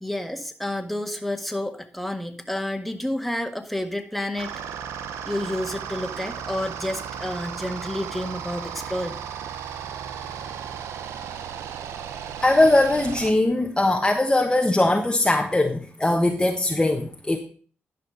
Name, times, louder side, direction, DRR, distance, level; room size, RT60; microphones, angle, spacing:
voice 1, 0.0-4.5 5.2-9.2, left 1 dB, ahead, 4 dB, 1.7 m, -30 dB
sound 1, 4.4-13.3, right 8 dB, 90° right, 0.7 m, -35 dB
voice 2, 12.4-17.4, left 2 dB, 15° left, 2 dB, 1.2 m, -20 dB
11.5 x 5.4 x 5.2 m, 0.41 s
supercardioid pair, 50°, 5 cm